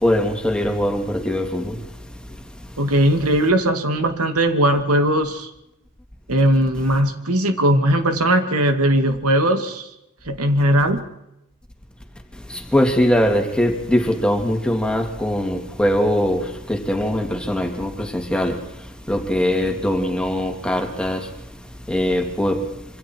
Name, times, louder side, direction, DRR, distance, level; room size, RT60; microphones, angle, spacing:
voice 1, 0.0-1.8 12.5-18.6 19.1-21.3 21.9-22.6, left 1 dB, 5° left, 2.8 m, -21 dB
voice 2, 2.8-5.5 6.3-9.9 10.3-11.0, right 1 dB, 85° right, 2.3 m, -19 dB
27.0 x 25.0 x 4.6 m
head